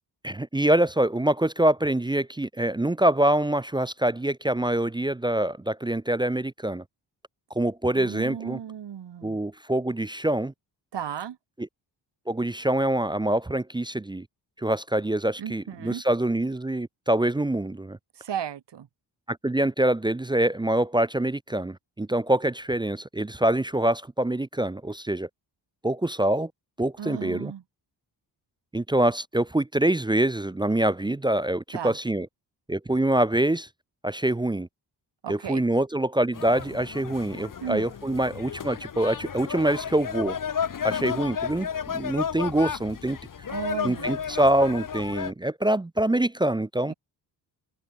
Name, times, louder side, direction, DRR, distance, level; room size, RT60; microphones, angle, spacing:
voice 1, 0.2-6.8 7.6-8.6 9.2-10.5 12.3-14.2 14.6-18.0 19.3-25.3 25.8-26.5 26.8-27.5 28.7-32.3 32.7-33.7 34.0-34.7 35.3-40.4 40.8-43.2 43.8-46.9, right 1 dB, 10° right, 0.5 m, -25 dB
voice 2, 7.9-9.4 10.9-11.4 15.4-16.0 18.2-18.9 27.0-27.6 31.7-32.0 35.2-35.6 37.6-37.9 43.5-44.2 46.9-47.0, right 9 dB, 75° right, 3.5 m, -35 dB
sound 1, 36.3-45.3, left 7 dB, 50° left, 1.5 m, -33 dB
cardioid pair, 85°, 42 cm